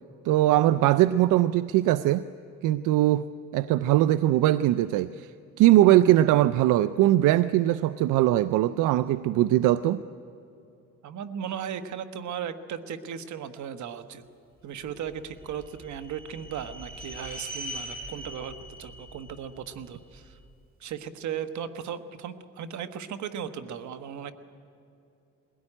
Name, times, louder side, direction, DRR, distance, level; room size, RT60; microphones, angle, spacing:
voice 1, 0.2-2.3 2.6-3.3 3.5-5.3 5.6-10.0, right 14 dB, 90° right, 15 dB, 0.5 m, -21 dB
voice 2, 11.0-14.2 14.6-20.4 20.8-24.3, right 8 dB, 70° right, 10 dB, 1.2 m, -36 dB
sound 1, 15.1-20.3, equal, 30° right, 5.1 m, -42 dB
21.0 x 17.0 x 9.9 m, 2.7 s
cardioid pair, 90°, 30 cm